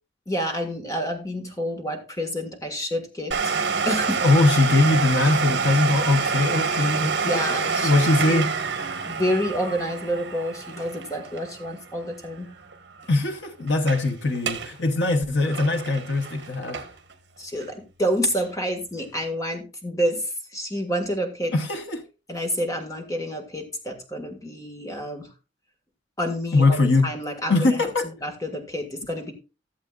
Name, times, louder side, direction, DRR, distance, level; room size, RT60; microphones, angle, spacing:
voice 1, 0.3-3.6 3.8-4.2 7.2-7.9 9.0-12.5 17.4-21.5 22.3-25.3 26.2-27.9 28.2-29.3, equal, 20° left, 1.7 m, -28 dB
Domestic sounds home sounds, 3.3-12.7 13.0-13.1 13.7-14.0 14.3-14.7 15.1-17.1 17.6-17.7 18.4-18.5, right 5 dB, 65° right, 1.4 m, -27 dB
voice 2, 4.2-8.5 13.1-16.8 21.5-22.0 26.5-27.1 27.5-28.1, left 2 dB, 75° left, 1.0 m, -21 dB
15.5 x 7.5 x 2.4 m
head